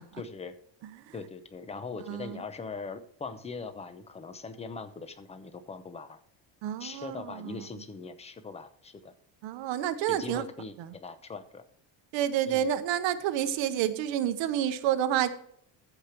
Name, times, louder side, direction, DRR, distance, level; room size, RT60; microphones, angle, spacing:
voice 1, 0.2-0.5 1.1-6.2 6.8-9.1 10.1-11.6 12.5-12.7, left 4 dB, 15° left, 10 dB, 0.7 m, -41 dB
voice 2, 2.1-2.4 6.6-7.6 9.4-10.4 10.8-10.9 12.1-15.3, right 10 dB, 80° right, 11 dB, 1.0 m, -29 dB
14.0 x 5.1 x 4.5 m, 0.67 s
cardioid pair, 160°, 44 cm